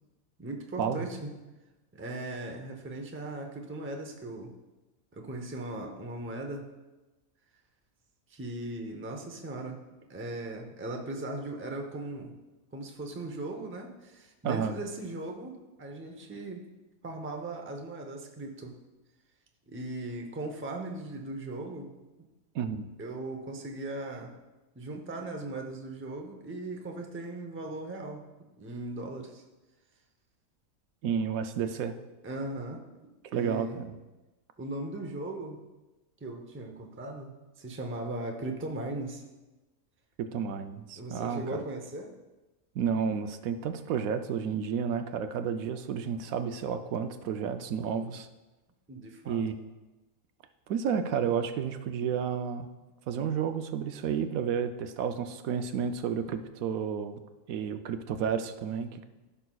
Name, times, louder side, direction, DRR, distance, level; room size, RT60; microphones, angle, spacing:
voice 1, 0.4-1.3 1.9-4.5 5.1-6.7 8.3-9.8 10.1-12.3 12.7-16.7 17.0-18.8 19.7-21.9 23.0-24.3 24.8-29.4 32.2-32.8 33.3-33.8 34.6-35.6 36.2-39.2 40.9-42.1 48.9-49.4, right 2 dB, 15° right, 2 dB, 0.5 m, -38 dB
voice 2, 14.4-14.8 22.5-22.9 31.0-31.9 33.3-33.9 40.2-41.6 42.8-48.3 49.3-49.6 50.7-52.7 53.1-57.2 57.5-59.0, right 7 dB, 85° right, 9 dB, 1.0 m, -31 dB
15.0 x 5.7 x 2.3 m, 1.1 s
omnidirectional pair, 1.4 m